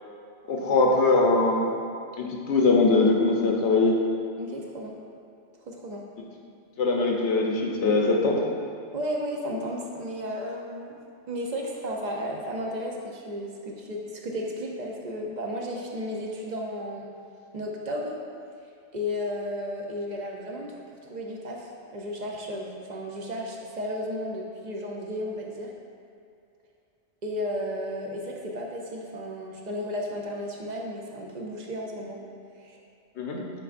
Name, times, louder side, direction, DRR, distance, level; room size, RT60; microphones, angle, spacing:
voice 1, 0.5-1.7 2.2-4.0 6.8-8.4 33.2-33.4, left 3 dB, 70° left, 0 dB, 1.1 m, -22 dB
voice 2, 4.4-5.0 5.7-6.0 8.9-11.0 11.3-17.1 17.5-18.2 18.9-20.7 21.0-25.7 27.2-32.2 32.6-32.8, equal, 45° right, -1 dB, 0.8 m, -33 dB
8.6 x 5.0 x 2.5 m, 2.5 s
omnidirectional pair, 1.2 m